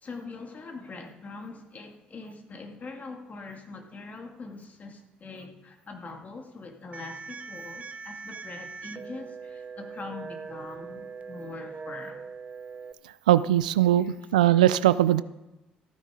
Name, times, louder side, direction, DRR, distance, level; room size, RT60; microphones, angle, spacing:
voice 1, 0.0-12.2 14.0-14.2, left 3 dB, 40° left, 4 dB, 2.2 m, -43 dB
sound 1, 6.9-12.9, right 5 dB, 35° right, 0.7 m, -41 dB
voice 2, 13.3-15.2, right 13 dB, 85° right, 16 dB, 0.4 m, -20 dB
14.5 x 9.9 x 4.9 m, 0.98 s
hypercardioid pair, 50°, 4 cm